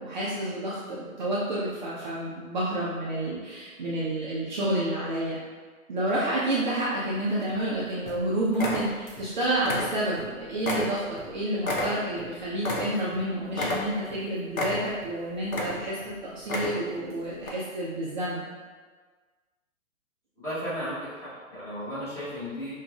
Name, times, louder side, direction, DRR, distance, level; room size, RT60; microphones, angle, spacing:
voice 1, 0.0-5.4 5.9-16.0 16.3-18.4, right 1 dB, 35° right, -8 dB, 0.5 m, -29 dB
sound 1, 7.0-7.7 8.1-8.2 8.5-9.3 9.6-10.3 10.6-13.2 13.5-14.2 14.5-15.1 15.4-16.0 16.4-17.0 17.4-17.5, left 1 dB, 70° left, 0.8 m, -31 dB
voice 2, 20.4-22.7, equal, 5° left, -13 dB, 1.1 m, -34 dB
5.7 x 2.4 x 2.3 m, 1.4 s
figure-of-eight pair, 125°, 42 cm